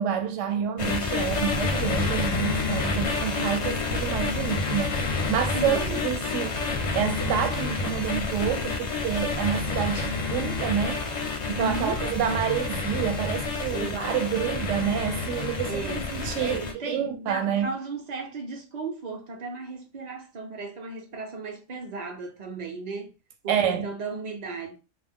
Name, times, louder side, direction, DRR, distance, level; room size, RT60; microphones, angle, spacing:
voice 1, 0.0-4.9 5.3-6.6 7.0-11.0 11.5-17.7 23.5-23.9, right 8 dB, 70° right, 0.9 m, -28 dB
sound 1, 0.8-16.7, left 3 dB, 50° left, 0.5 m, -29 dB
voice 2, 5.5-6.0 11.6-12.0 13.7-14.1 15.7-16.0 16.4-23.1 23.4-24.8, right 3 dB, 50° right, 0.5 m, -35 dB
2.4 x 2.0 x 3.5 m
omnidirectional pair, 1.4 m